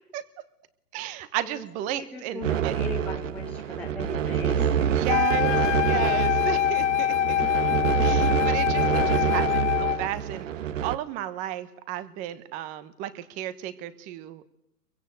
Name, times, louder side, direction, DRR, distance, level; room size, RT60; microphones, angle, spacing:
voice 1, 0.9-2.9 4.9-7.4 8.0-10.5 10.8-14.5, right 13 dB, 15° right, 16 dB, 0.9 m, -34 dB
voice 2, 1.9-5.1 7.6-7.9 8.8-9.4, left 3 dB, 5° left, -1 dB, 1.6 m, -38 dB
sound 1, 2.4-11.0, right 9 dB, 50° right, 1.3 m, -26 dB
Wind instrument woodwind instrument, 5.1-10.1, left 12 dB, 45° left, 1.2 m, -25 dB
25.0 x 23.0 x 8.1 m, 0.83 s
hypercardioid pair, 145°, 48 cm